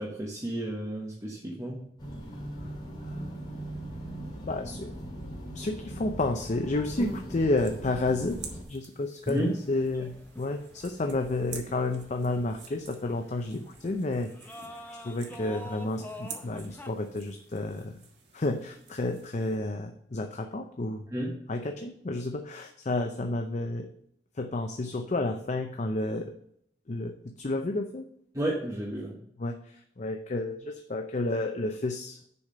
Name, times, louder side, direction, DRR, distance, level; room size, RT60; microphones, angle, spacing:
voice 1, 0.0-1.8 9.3-9.5 21.1-21.4 28.3-29.2, right 1 dB, 20° right, -4 dB, 1.2 m, -32 dB
sound 1, 2.0-8.6, right 1 dB, 25° left, 2.7 m, -39 dB
voice 2, 3.1-3.6 4.4-4.9 5.5-8.4 8.7-14.6 15.0-18.0 18.3-21.1 21.5-23.9 24.4-26.3 26.9-28.1 29.4-32.2, left 2 dB, 40° left, 5 dB, 0.6 m, -31 dB
sound 2, 7.5-19.6, right 6 dB, 80° right, 1.6 m, -50 dB
sound 3, 9.4-16.9, left 1 dB, 10° left, 0.8 m, -47 dB
7.0 x 4.9 x 6.5 m, 0.70 s
head